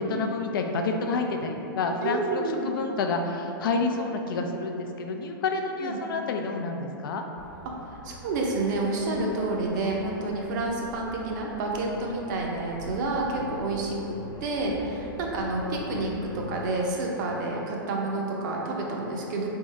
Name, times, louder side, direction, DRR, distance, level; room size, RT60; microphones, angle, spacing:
voice 1, 0.1-7.2, left 3 dB, 70° left, 4 dB, 0.4 m, -29 dB
voice 2, 2.0-2.7 5.8-6.0 7.9-19.5, right 2 dB, 55° right, -1 dB, 0.7 m, -29 dB
sound 1, 7.4-16.7, left 1 dB, 35° left, 0.9 m, -44 dB
3.6 x 2.6 x 3.2 m, 2.9 s
hypercardioid pair, 120°, 12 cm